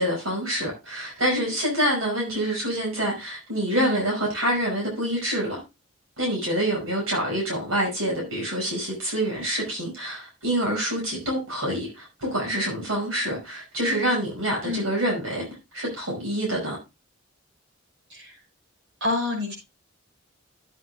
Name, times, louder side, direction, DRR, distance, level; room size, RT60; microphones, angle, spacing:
voice 1, 0.0-5.6 6.2-15.4 15.7-16.8, right 1 dB, 85° right, 5.4 m, -26 dB
voice 2, 19.0-19.5, left 2 dB, 60° right, 6.1 m, -28 dB
13.0 x 9.7 x 2.2 m
head